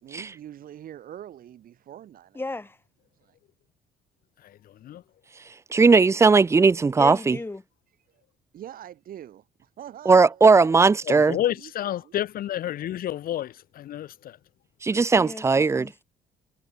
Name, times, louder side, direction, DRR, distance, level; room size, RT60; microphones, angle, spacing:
voice 1, 0.0-2.4 3.1-3.4 8.5-12.2, right 11 dB, 60° right, 3.0 m, -44 dB
voice 2, 2.3-2.8 7.0-7.6 15.2-16.0, left 2 dB, 15° left, 1.7 m, -35 dB
voice 3, 4.4-5.0 11.1-14.4, left 12 dB, 60° left, 1.5 m, -30 dB
voice 4, 5.7-7.4 10.1-11.4 14.8-15.9, right 4 dB, 15° right, 0.5 m, -18 dB
cardioid pair, 110°, 17 cm